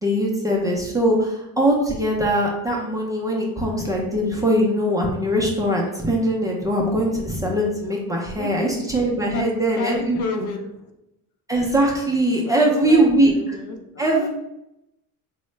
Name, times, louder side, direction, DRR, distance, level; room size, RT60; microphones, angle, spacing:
voice 1, 0.0-10.2 11.5-13.3 14.0-14.3, right 1 dB, 10° right, -2 dB, 0.4 m, -21 dB
voice 2, 8.4-8.7 9.3-10.9 12.4-14.3, left 4 dB, 60° left, 4 dB, 0.6 m, -32 dB
3.6 x 2.1 x 3.1 m, 0.86 s
cardioid pair, 135°, 34 cm